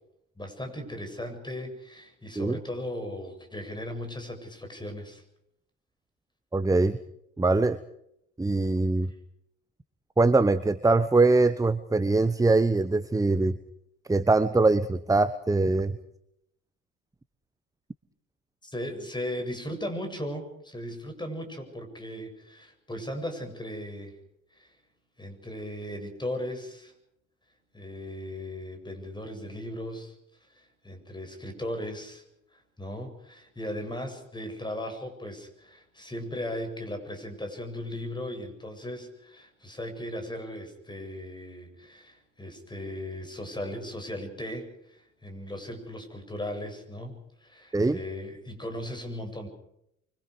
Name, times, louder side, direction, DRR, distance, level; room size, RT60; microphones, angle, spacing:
voice 1, 0.4-5.2 18.6-24.2 24.5-24.7 25.2-26.9 27.7-30.1 30.5-32.2 32.5-49.5, left 1 dB, 10° left, 6 dB, 7.7 m, -37 dB
voice 2, 6.5-7.0 7.4-7.8 8.4-9.1 10.2-13.6 14.1-16.0 47.7-48.0, right 3 dB, 10° right, 14 dB, 1.1 m, -22 dB
25.5 x 25.5 x 5.1 m, 0.76 s
figure-of-eight pair, 60°, 37 cm